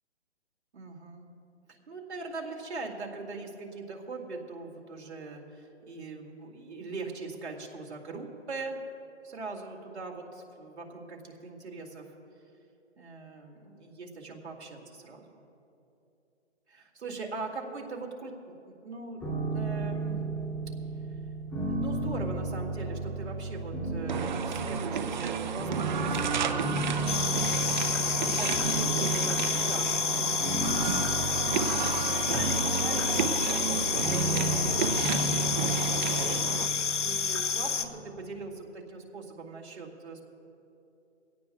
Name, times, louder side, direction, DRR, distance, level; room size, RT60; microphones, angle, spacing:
voice 1, 0.7-1.3 1.9-8.8 9.2-12.1 13.0-15.4 16.7-19.2 19.5-20.2 21.7-26.6 26.8-27.4 28.2-35.3 35.9-36.5 37.0-40.2, right 3 dB, 70° right, 1 dB, 2.4 m, -41 dB
sound 1, 19.2-38.2, right 2 dB, 5° left, 2.9 m, -34 dB
sound 2, 24.1-36.7, right 6 dB, 40° right, 0.7 m, -32 dB
sound 3, 27.1-37.9, left 6 dB, 85° left, 0.9 m, -29 dB
22.0 x 17.0 x 2.4 m, 2.7 s
hypercardioid pair, 150°, 35 cm